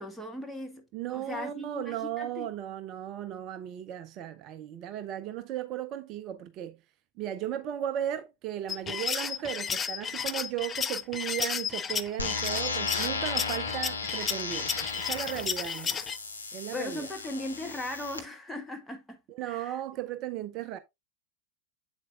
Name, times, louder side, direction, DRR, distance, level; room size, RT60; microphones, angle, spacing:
voice 1, 0.0-0.8 1.1-2.5 16.7-19.8, left 2 dB, 5° left, 1.5 m, -38 dB
voice 2, 0.9-6.8 7.2-16.0 16.5-17.1 19.3-20.8, right 11 dB, 35° right, 0.5 m, -36 dB
sound 1, 8.7-16.2, left 7 dB, 20° left, 0.5 m, -33 dB
sound 2, 12.2-18.2, left 4 dB, 85° left, 1.2 m, -35 dB
7.9 x 7.4 x 2.4 m
figure-of-eight pair, 90°, 0 cm